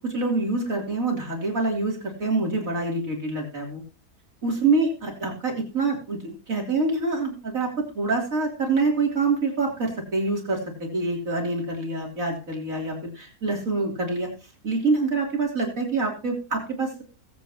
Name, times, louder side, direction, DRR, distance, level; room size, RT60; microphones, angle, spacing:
voice 1, 0.0-3.8 4.4-14.3 14.6-17.0, right 3 dB, 60° right, 0 dB, 3.7 m, -26 dB
21.5 x 8.4 x 2.9 m, 0.35 s
omnidirectional pair, 1.6 m